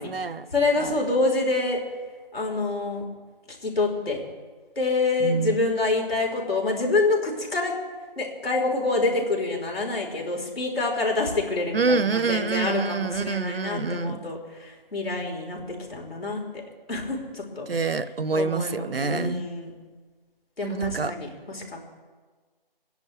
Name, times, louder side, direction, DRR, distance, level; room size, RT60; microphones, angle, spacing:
voice 1, 0.0-0.5 0.8-0.9 5.2-5.6 11.7-14.2 17.7-19.4 20.6-21.1, right 4 dB, 80° right, 14 dB, 0.9 m, -26 dB
voice 2, 0.5-1.8 2.3-3.0 3.5-4.2 4.8-7.7 8.2-15.6 15.9-16.6 16.9-17.7 18.3-19.7 20.6-21.6, left 3 dB, 90° left, 0 dB, 4.2 m, -26 dB
24.5 x 10.5 x 3.3 m, 1.4 s
figure-of-eight pair, 170°, 29 cm